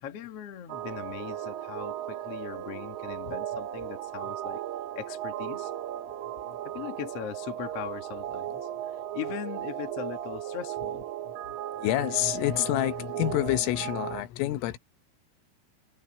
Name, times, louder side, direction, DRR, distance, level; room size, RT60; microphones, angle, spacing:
voice 1, 0.0-4.6 4.9-5.7 6.6-11.0, left 10 dB, 65° left, 1.5 m, -40 dB
sound 1, 0.7-14.2, right 12 dB, 80° right, 4.2 m, -36 dB
voice 2, 11.8-14.8, left 15 dB, 85° left, 3.7 m, -28 dB
omnidirectional pair, 5.7 m